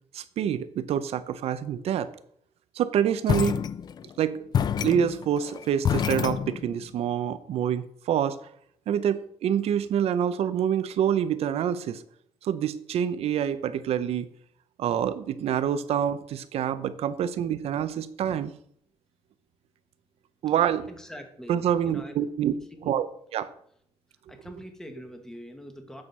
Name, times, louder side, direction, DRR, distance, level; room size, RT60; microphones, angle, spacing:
voice 1, 0.1-2.1 2.8-3.6 4.2-4.5 4.8-8.4 8.9-12.0 12.4-14.3 14.8-18.5 20.4-20.9 21.5-22.5 22.9-23.1 23.3-23.5, right 9 dB, 70° right, 14 dB, 0.7 m, -26 dB
sound 1, 3.3-4.2 4.5-6.9, left 8 dB, 40° left, 0.4 m, -27 dB
voice 2, 20.9-22.1 22.5-22.9 24.3-26.0, equal, 5° left, 5 dB, 1.2 m, -44 dB
8.7 x 6.4 x 5.5 m, 0.68 s
cardioid pair, 155°, 11 cm